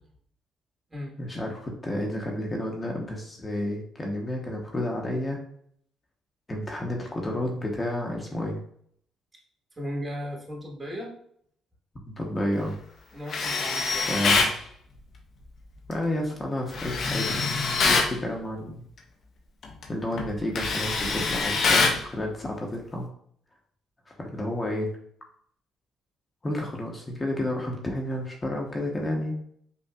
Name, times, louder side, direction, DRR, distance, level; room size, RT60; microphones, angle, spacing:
voice 1, 1.2-5.4 6.5-8.6 12.0-12.8 14.1-14.5 15.9-17.5 17.8-18.8 19.9-23.1 24.2-24.9 26.4-29.4, left 1 dB, 25° left, -1 dB, 0.9 m, -31 dB
voice 2, 9.8-11.1 13.1-14.1, equal, 25° right, -1 dB, 1.4 m, -36 dB
Tools, 13.3-14.6 16.7-18.1 19.6-19.8 20.2-22.0, left 4 dB, 55° left, 0.7 m, -24 dB
5.4 x 2.4 x 2.3 m, 0.65 s
cardioid pair, 80°, 0 cm